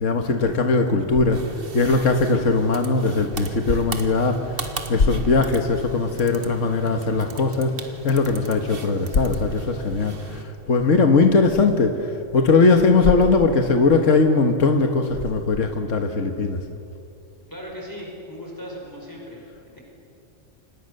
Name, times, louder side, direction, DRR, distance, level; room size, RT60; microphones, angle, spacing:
voice 1, 0.0-1.4 1.7-7.8 8.0-16.6, left 3 dB, 75° left, 5 dB, 1.8 m, -20 dB
sound 1, 1.3-10.4, right 3 dB, 50° right, 1.7 m, -38 dB
voice 2, 17.5-19.4 19.7-19.8, equal, 15° left, -2 dB, 5.4 m, -37 dB
29.5 x 26.5 x 6.7 m, 2.6 s
omnidirectional pair, 1.3 m